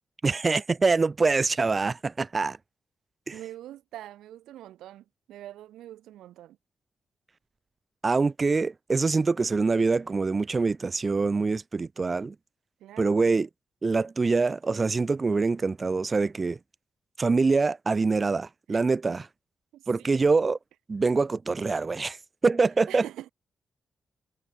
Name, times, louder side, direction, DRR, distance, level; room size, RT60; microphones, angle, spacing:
voice 1, 0.2-2.6 3.3-3.4 8.0-12.4 13.0-13.5 13.8-16.6 17.2-19.3 19.9-20.6 20.9-22.2 22.4-23.0, right 4 dB, 40° right, 0.4 m, -24 dB
voice 2, 3.3-6.6 12.8-13.4 18.7-18.8 19.7-20.2 22.9-23.3, right 13 dB, 90° right, 2.2 m, -44 dB
supercardioid pair, 55°, 0 cm